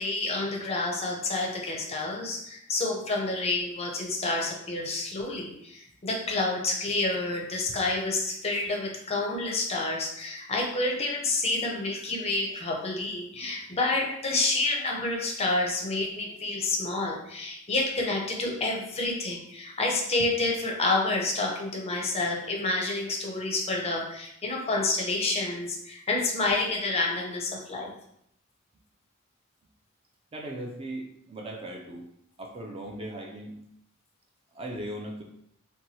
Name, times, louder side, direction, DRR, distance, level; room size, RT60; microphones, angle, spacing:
voice 1, 0.0-27.9, left 2 dB, 30° left, 0 dB, 0.5 m, -29 dB
voice 2, 30.3-32.1 32.4-33.6 34.5-35.2, right 1 dB, 25° right, 0 dB, 0.4 m, -38 dB
2.9 x 2.2 x 2.7 m, 0.73 s
head